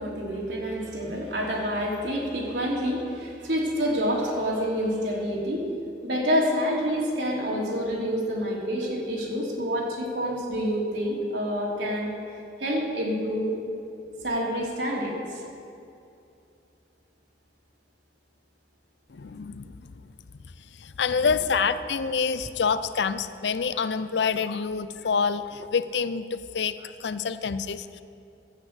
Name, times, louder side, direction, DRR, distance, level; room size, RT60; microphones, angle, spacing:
voice 1, 0.0-5.7 6.0-12.1 12.6-13.6 14.2-15.4 21.4-21.5, equal, 90° right, -3 dB, 3.1 m, -27 dB
voice 2, 19.1-20.0 20.4-28.0, left 5 dB, 80° left, 13 dB, 0.5 m, -27 dB
12.5 x 8.3 x 8.0 m, 2.6 s
head